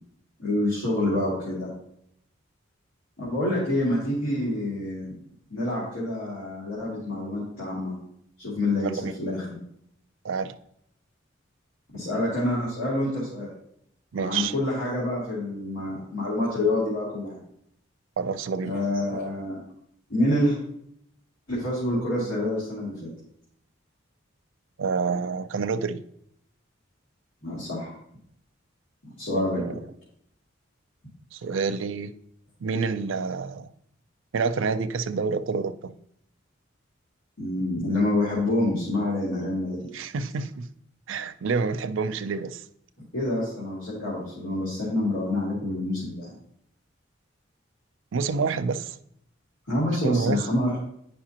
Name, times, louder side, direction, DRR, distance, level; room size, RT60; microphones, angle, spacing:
voice 1, 0.4-1.7 3.2-5.1 5.5-8.0 8.4-8.9 9.2-9.6 11.9-13.5 14.1-17.4 18.6-19.6 20.1-20.6 21.5-23.1 27.4-27.9 29.0-29.6 37.4-39.9 43.1-46.3 49.7-50.8, left 1 dB, 90° left, 2.6 m, -27 dB
voice 2, 8.8-9.1 10.2-10.5 14.1-14.5 18.2-18.8 24.8-26.0 29.3-29.7 31.3-32.1 32.6-33.7 34.3-35.9 39.9-40.7 41.1-42.6 48.1-49.0 50.0-50.4, right 5 dB, 75° right, 0.4 m, -28 dB
9.8 x 5.4 x 2.9 m
head